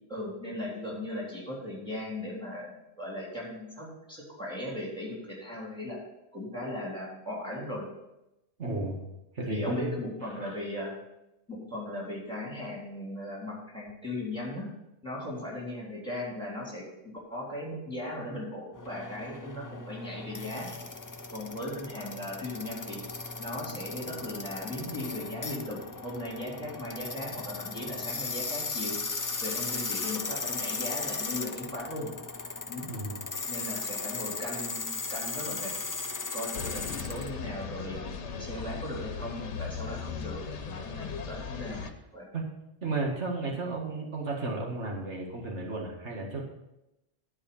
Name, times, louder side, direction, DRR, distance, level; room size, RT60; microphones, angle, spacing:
voice 1, 0.1-6.0 6.3-7.9 8.7-8.8 9.4-11.0 11.5-14.7 15.0-16.9 17.3-20.7 21.3-23.0 23.4-29.0 29.4-32.1 32.7-32.9 33.5-35.7 36.3-38.0 38.4-41.8 42.1-42.3, left 1 dB, 5° left, -5 dB, 3.6 m, -38 dB
voice 2, 8.6-9.0 9.3-10.0 10.3-10.6 32.9-33.2 42.3-42.5 42.8-46.4, right 2 dB, 85° right, -1 dB, 2.1 m, -33 dB
sound 1, 18.7-37.3, left 3 dB, 30° left, 0.4 m, -37 dB
sound 2, 36.5-41.9, left 6 dB, 90° left, 1.2 m, -38 dB
11.5 x 4.9 x 7.0 m, 0.91 s
omnidirectional pair, 1.1 m